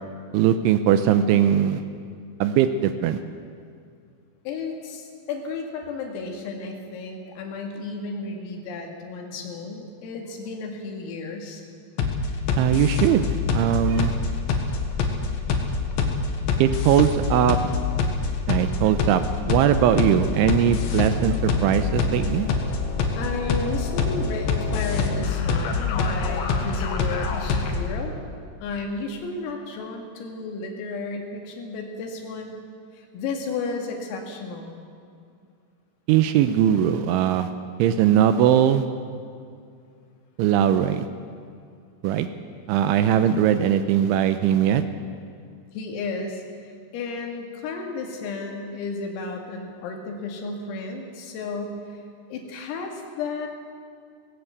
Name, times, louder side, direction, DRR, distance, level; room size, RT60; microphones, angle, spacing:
voice 1, 0.3-1.8 2.4-3.2 12.6-13.2 13.5-14.1 16.6-17.6 18.5-19.2 19.5-22.5 36.1-37.5 37.8-38.8 40.4-41.1 42.0-42.3 42.7-44.8, right 10 dB, 80° right, 10 dB, 2.9 m, -20 dB
voice 2, 4.5-11.6 23.2-28.2 28.6-32.6 32.9-34.7 45.7-52.0 52.3-53.5, left 3 dB, 85° left, 2 dB, 4.9 m, -33 dB
sound 1, 12.0-28.0, left 4 dB, 70° left, 3.8 m, -25 dB
18.5 x 17.5 x 8.2 m, 2.3 s
omnidirectional pair, 5.9 m